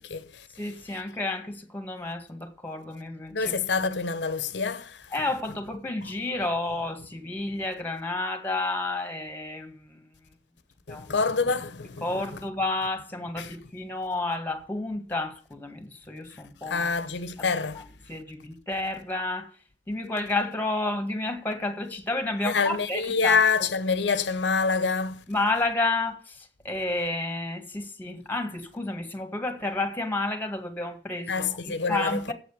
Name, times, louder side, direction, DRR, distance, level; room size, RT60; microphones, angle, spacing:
voice 1, 0.0-0.5 3.3-5.0 10.9-12.2 13.4-13.6 16.7-17.8 22.4-25.2 31.3-32.2, left 4 dB, 80° left, 0.9 m, -26 dB
voice 2, 0.6-3.5 5.1-10.0 10.9-11.1 12.0-16.9 17.4-17.5 17.7-19.5 19.9-23.4 25.3-32.3, left 2 dB, 10° left, 1.7 m, -31 dB
7.8 x 7.7 x 8.4 m
head